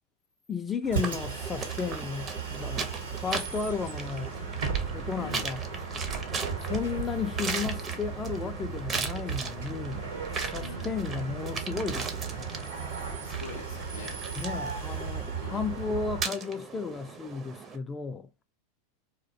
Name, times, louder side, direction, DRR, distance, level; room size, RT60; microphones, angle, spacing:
voice 1, 0.5-4.3 4.9-5.6 6.6-12.7 14.4-18.3, left 5 dB, 25° left, 0.3 m, -34 dB
Bus, 0.8-16.3, right 6 dB, 80° right, 0.8 m, -36 dB
sound 1, 1.0-17.8, right 5 dB, 30° right, 0.5 m, -38 dB
voice 2, 10.6-10.9 13.2-14.2 15.3-15.7, left 5 dB, 80° left, 0.5 m, -44 dB
2.3 x 2.1 x 2.6 m
hypercardioid pair, 95°, 0 cm